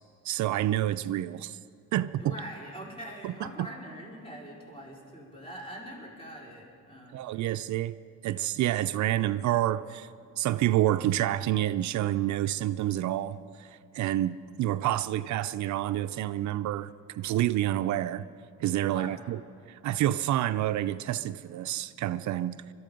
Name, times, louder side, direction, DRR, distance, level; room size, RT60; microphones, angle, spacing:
voice 1, 0.2-1.6 1.9-2.4 3.2-3.3 3.6-3.7 7.1-8.0 8.2-10.1 10.4-18.3 18.6-19.4 19.7-22.7, right 13 dB, 70° right, 0.5 m, -28 dB
voice 2, 2.1-7.5 18.7-19.3, right 1 dB, 20° left, 4.8 m, -44 dB
21.5 x 12.5 x 5.2 m
cardioid pair, 90°, 30 cm